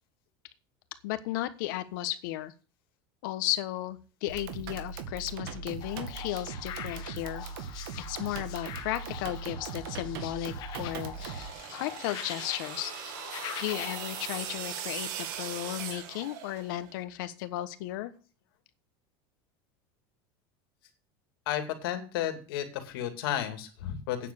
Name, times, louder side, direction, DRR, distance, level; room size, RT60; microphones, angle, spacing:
voice 1, 1.0-2.5 3.2-7.4 8.0-11.5 11.7-12.9 13.6-18.1, left 14 dB, 60° left, 12 dB, 1.2 m, -35 dB
sound 1, 4.3-11.5, right 6 dB, 90° right, 2.1 m, -40 dB
sound 2, 5.8-14.6, left 10 dB, 35° left, 1.3 m, -43 dB
sound 3, 11.0-16.9, right 10 dB, 60° right, 1.7 m, -40 dB
voice 2, 21.5-24.3, left 11 dB, 90° left, 7 dB, 2.5 m, -33 dB
9.2 x 6.9 x 8.6 m, 0.37 s
cardioid pair, 180°, 12 cm